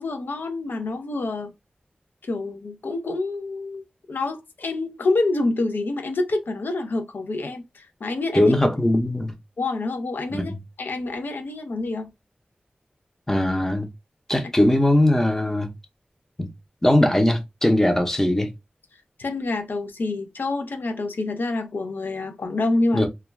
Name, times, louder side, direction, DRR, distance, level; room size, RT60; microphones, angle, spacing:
voice 1, 0.0-1.5 2.2-8.5 9.6-10.5 10.8-12.1 19.2-23.1, left 2 dB, 85° left, 0.4 m, -27 dB
voice 2, 8.4-9.3 10.3-10.6 13.3-13.9 14.3-15.7 16.4-16.5 16.8-18.5 22.9-23.1, left 1 dB, 10° left, 0.6 m, -20 dB
2.3 x 2.1 x 3.1 m
wide cardioid pair, 85°, 3 cm